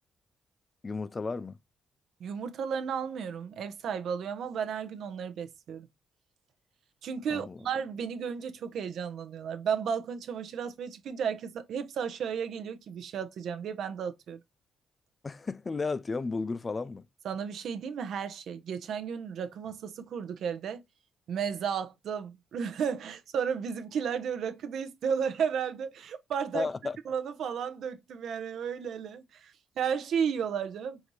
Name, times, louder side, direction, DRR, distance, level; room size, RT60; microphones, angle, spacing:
voice 1, 0.8-1.6 7.3-7.6 15.2-17.0 26.5-27.0, left 4 dB, 30° left, 0.3 m, -33 dB
voice 2, 2.2-5.9 7.0-14.4 17.2-20.8 21.3-26.7 27.1-31.0, right 7 dB, 70° right, 0.6 m, -33 dB
5.0 x 2.7 x 3.0 m
cardioid pair, 90°, 0 cm